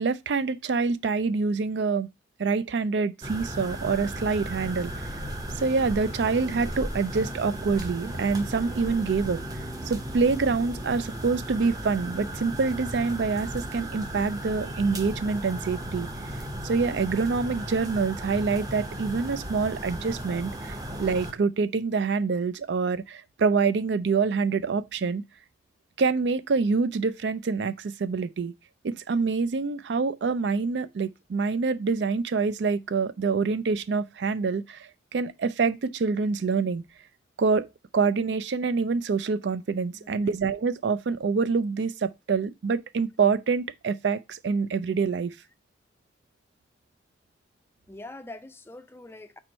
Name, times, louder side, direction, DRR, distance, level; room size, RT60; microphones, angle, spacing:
voice 1, 0.0-2.1 2.4-4.9 5.6-9.4 9.8-16.1 16.6-25.2 26.0-28.5 28.8-36.8 37.4-37.7 37.9-45.3, right 4 dB, 75° right, 0.4 m, -26 dB
sound 1, 3.2-21.3, right 1 dB, 20° right, 0.7 m, -35 dB
voice 2, 39.9-40.3 47.9-49.4, left 2 dB, 15° left, 0.4 m, -44 dB
4.5 x 4.3 x 5.1 m
head